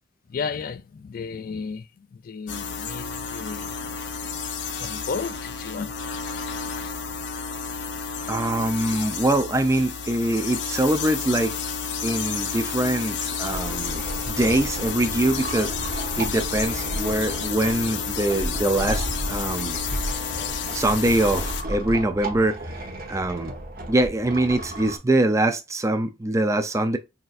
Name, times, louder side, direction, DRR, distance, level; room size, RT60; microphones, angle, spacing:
voice 1, 0.3-7.0, left 5 dB, 50° left, 0.4 m, -35 dB
sound 1, 2.5-21.6, left 6 dB, 85° left, 0.7 m, -31 dB
voice 2, 8.3-11.6 12.0-15.7 16.2-19.8 20.7-23.5 23.9-27.0, right 1 dB, 15° right, 0.5 m, -23 dB
sound 2, 13.5-25.0, right 1 dB, 55° right, 1.0 m, -33 dB
5.8 x 2.6 x 2.4 m
head